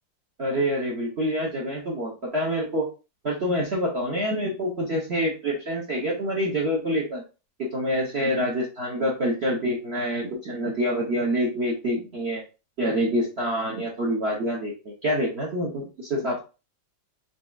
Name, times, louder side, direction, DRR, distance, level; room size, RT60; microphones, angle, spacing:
voice 1, 0.4-2.9 3.2-7.2 7.6-12.4 12.8-16.4, equal, 50° right, -2 dB, 0.7 m, -26 dB
4.2 x 3.3 x 2.3 m, 0.31 s
omnidirectional pair, 2.2 m